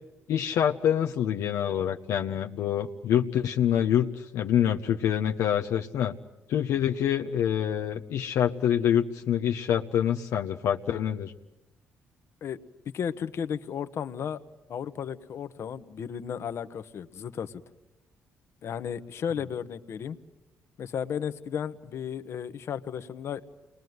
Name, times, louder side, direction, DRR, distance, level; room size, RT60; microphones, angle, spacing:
voice 1, 0.3-6.1 6.5-11.3, left 9 dB, 80° left, 3 dB, 1.0 m, -26 dB
voice 2, 12.9-14.4 14.7-17.6 18.6-20.2 20.8-23.4, left 8 dB, 65° left, 11 dB, 1.3 m, -34 dB
29.0 x 21.5 x 9.5 m, 1.0 s
cardioid pair, 85°, 5 cm